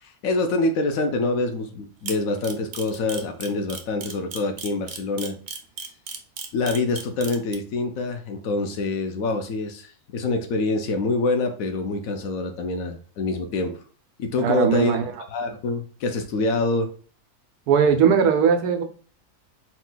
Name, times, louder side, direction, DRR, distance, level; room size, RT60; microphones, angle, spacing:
voice 1, 0.0-5.4 6.5-13.8 14.2-15.0 15.3-16.9, left 3 dB, 70° left, 6 dB, 1.0 m, -26 dB
Camera, 2.1-7.5, right 5 dB, 60° right, 0.5 m, -34 dB
voice 2, 14.4-15.1 17.7-18.8, right 7 dB, 90° right, 6 dB, 1.2 m, -19 dB
4.5 x 2.3 x 3.8 m, 0.40 s
omnidirectional pair, 1.6 m